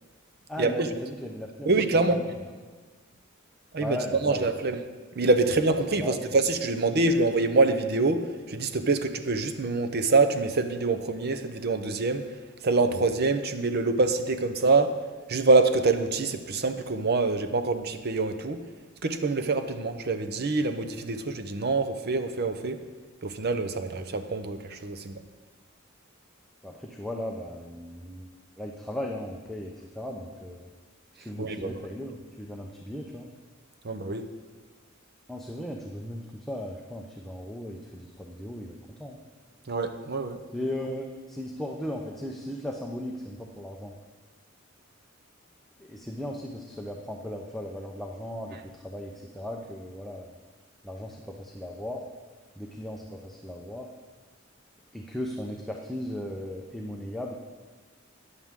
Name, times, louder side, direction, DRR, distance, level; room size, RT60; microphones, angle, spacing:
voice 1, 0.5-1.7 2.1-2.3 3.8-4.7 6.0-6.3 26.6-30.7 31.2-33.3 35.3-39.2 40.5-43.9 45.8-50.3 50.8-52.0 52.6-53.9 54.9-57.3, left 1 dB, ahead, -1 dB, 0.7 m, -37 dB
voice 2, 1.7-2.2 3.7-4.8 5.1-12.3 12.6-14.9 15.3-18.6 19.0-22.8 23.2-25.2 31.4-31.7 33.8-34.3 39.7-40.4, right 3 dB, 50° right, 9 dB, 0.7 m, -25 dB
13.5 x 9.6 x 3.7 m, 1.4 s
head